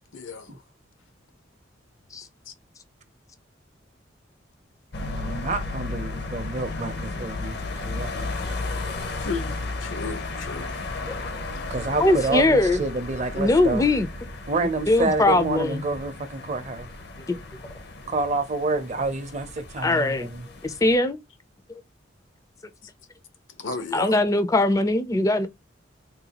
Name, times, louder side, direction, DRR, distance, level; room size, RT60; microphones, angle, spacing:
voice 1, 0.1-0.6 2.5-2.6 9.2-10.9 23.6-24.2, left 4 dB, 85° left, 0.8 m, -34 dB
sound 1, 4.9-21.0, left 3 dB, 60° left, 0.6 m, -34 dB
voice 2, 5.0-8.5 11.7-13.9 14.5-16.9 18.1-20.5, right 3 dB, 35° right, 0.5 m, -28 dB
voice 3, 12.0-12.8 13.4-14.1 14.9-15.8 17.3-17.4 19.8-20.3 20.6-21.2 21.7-21.8 23.9-25.5, left 2 dB, 15° left, 0.3 m, -21 dB
3.8 x 2.3 x 2.8 m
head